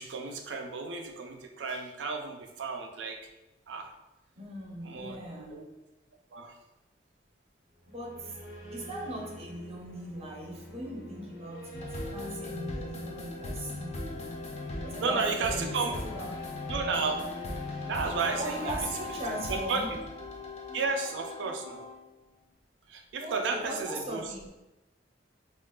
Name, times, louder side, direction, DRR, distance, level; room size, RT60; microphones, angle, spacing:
voice 1, 0.0-3.2 3.7-3.9 4.8-5.2 5.5-5.6 6.3-6.6 15.0-15.9 16.7-17.3 17.8-18.7 19.1-19.2 19.5-20.0 20.7-21.9 22.9-24.3, right 4 dB, 85° right, 4 dB, 0.4 m, -33 dB
voice 2, 4.4-5.7 7.9-8.4 8.7-14.2 14.8-16.4 18.4-20.0 23.2-24.5, right 1 dB, 35° right, 0 dB, 0.6 m, -39 dB
sound 1, 7.7-20.5, left 1 dB, 80° left, 0.8 m, -47 dB
sound 2, 11.7-22.1, left 2 dB, 35° left, 0.4 m, -39 dB
2.4 x 2.3 x 3.6 m, 1.0 s
head